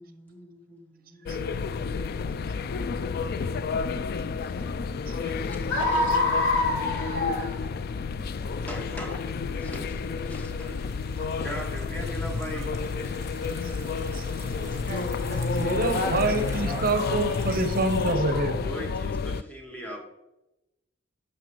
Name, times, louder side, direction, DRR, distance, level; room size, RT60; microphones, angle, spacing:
voice 1, 0.0-2.0 5.5-5.6 8.7-12.8 18.6-20.0, equal, 10° left, 1.6 m, -41 dB
sound 1, 1.3-19.4, left 4 dB, 50° left, 0.3 m, -30 dB
voice 2, 5.7-7.9 11.2-11.3 14.5-16.3 16.7-17.5 18.3-18.6, left 2 dB, 85° left, 2.8 m, -29 dB
sound 2, 8.2-18.1, right 4 dB, 15° right, 1.6 m, -50 dB
voice 3, 15.6-18.6, right 2 dB, 50° right, 0.8 m, -27 dB
9.8 x 6.7 x 3.0 m
head